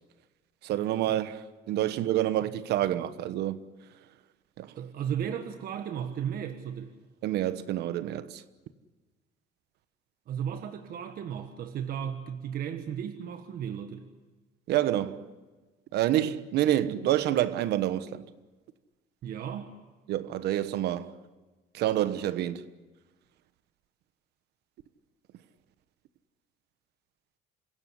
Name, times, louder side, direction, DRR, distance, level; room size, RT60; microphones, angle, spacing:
voice 1, 0.6-3.6 4.6-4.7 7.2-8.4 14.7-15.3 15.9-18.2 20.1-21.2 21.7-22.6, right 13 dB, 75° right, 1.2 m, -28 dB
voice 2, 4.8-6.9 10.3-14.0 19.2-19.7, right 8 dB, 60° right, 1.5 m, -35 dB
27.0 x 16.0 x 9.8 m
cardioid pair, 110°, 17 cm